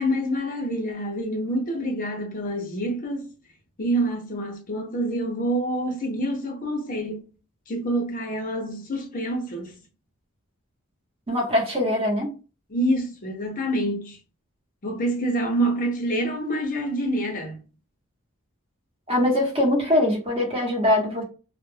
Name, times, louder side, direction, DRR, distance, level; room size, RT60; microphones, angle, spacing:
voice 1, 0.0-3.3 3.8-7.2 7.7-9.8 12.7-14.2 14.8-17.6, right 1 dB, 40° left, 0.6 m, -27 dB
voice 2, 11.3-12.3 19.1-21.2, left 1 dB, 25° right, 0.9 m, -22 dB
2.2 x 2.1 x 3.2 m
head